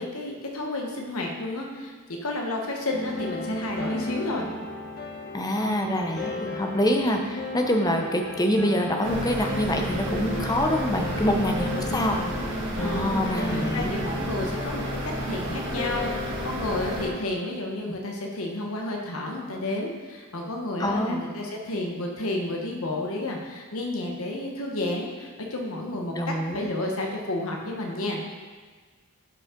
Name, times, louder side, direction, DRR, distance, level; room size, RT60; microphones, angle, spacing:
voice 1, 0.0-1.9 2.2-4.5 10.2-10.4 11.7-12.2 12.8-13.1 13.5-28.2, left 2 dB, 70° left, 0 dB, 1.2 m, -31 dB
sound 1, 2.9-17.2, left 1 dB, 45° left, 1.2 m, -34 dB
voice 2, 5.3-12.2 12.8-13.9 17.9-18.0 20.8-21.2 26.1-26.7, left 1 dB, 15° left, 3 dB, 0.7 m, -26 dB
sound 2, 9.0-17.1, right 1 dB, 55° right, 1.8 m, -32 dB
11.5 x 5.4 x 3.8 m, 1.4 s
head